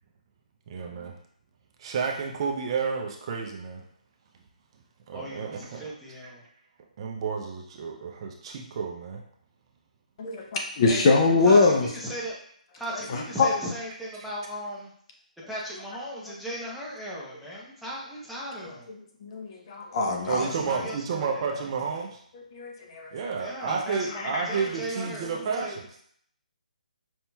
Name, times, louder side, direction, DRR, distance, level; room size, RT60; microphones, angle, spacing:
voice 1, 0.7-1.1 1.8-3.8 5.1-5.9 7.0-9.2 20.3-22.2 23.1-25.7, right 5 dB, 35° right, 1 dB, 0.5 m, -31 dB
voice 2, 5.1-6.4 10.9-12.4 12.8-14.9 15.5-18.9 20.2-21.3 21.5-21.6 23.4-25.8, right 1 dB, ahead, -7 dB, 0.8 m, -37 dB
voice 3, 10.2-11.9 12.9-13.5 19.2-20.5 22.5-23.2 24.3-24.4, left 3 dB, 35° left, 2 dB, 0.6 m, -23 dB
5.3 x 2.8 x 2.3 m, 0.64 s
figure-of-eight pair, 150°, 5 cm